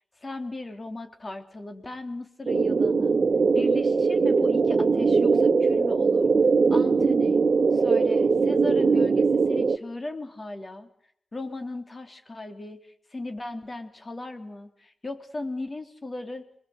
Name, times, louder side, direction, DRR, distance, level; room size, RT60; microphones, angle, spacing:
voice 1, 0.2-3.2 3.6-6.3 6.7-7.4 7.7-10.9 11.3-12.8 13.1-16.5, left 2 dB, 40° left, 6 dB, 3.5 m, -37 dB
sound 1, 2.5-9.8, right 4 dB, 55° right, 1.2 m, -21 dB
27.0 x 21.0 x 8.0 m, 0.70 s
cardioid pair, 60°, 0 cm